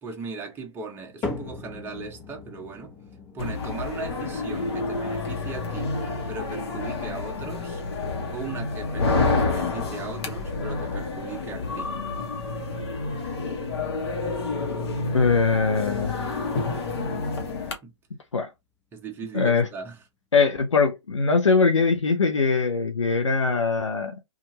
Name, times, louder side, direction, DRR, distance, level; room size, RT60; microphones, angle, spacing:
voice 1, 0.0-2.9 3.3-6.0 6.3-7.8 8.3-12.0 17.8-17.9 18.9-20.0, right 4 dB, 15° right, 0.8 m, -38 dB
sound 1, 1.2-17.5 17.9-18.4 19.0-19.1 19.9-20.0, left 3 dB, 25° left, 1.1 m, -44 dB
sound 2, 3.4-17.7, left 3 dB, 60° left, 1.0 m, -29 dB
voice 2, 15.1-16.3 18.3-18.5 19.3-19.7 20.3-24.2, left 4 dB, 90° left, 0.6 m, -22 dB
2.8 x 2.5 x 2.7 m
hypercardioid pair, 125°, 15 cm